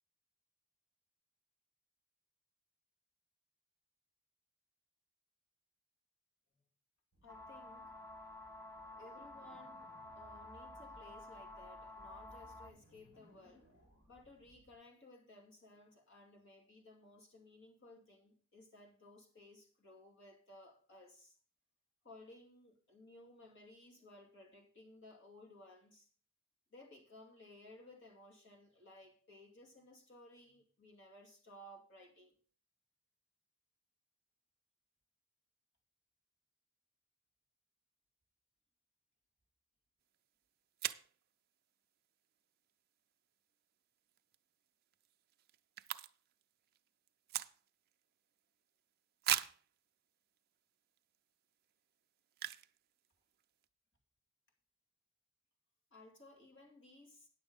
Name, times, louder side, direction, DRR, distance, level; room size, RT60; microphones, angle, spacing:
sound 1, 7.1-14.7, right 1 dB, 85° left, 6.3 m, -64 dB
voice 1, 7.2-7.9 9.0-13.7 14.1-21.4 22.0-26.1 26.7-32.3 55.9-57.3, left 1 dB, 55° left, 2.5 m, -59 dB
sound 2, 7.3-12.7, left 2 dB, 15° left, 0.7 m, -52 dB
sound 3, 40.1-40.2 40.8-41.1 44.1-44.3 44.7-44.8 44.9-46.4 46.7-47.9 48.4-48.5 49.2-49.7 50.4-50.5 51.0-51.1 52.3-52.8 53.0-53.1 53.3-53.6, right 12 dB, 45° right, 0.4 m, -39 dB
9.5 x 7.1 x 5.2 m
head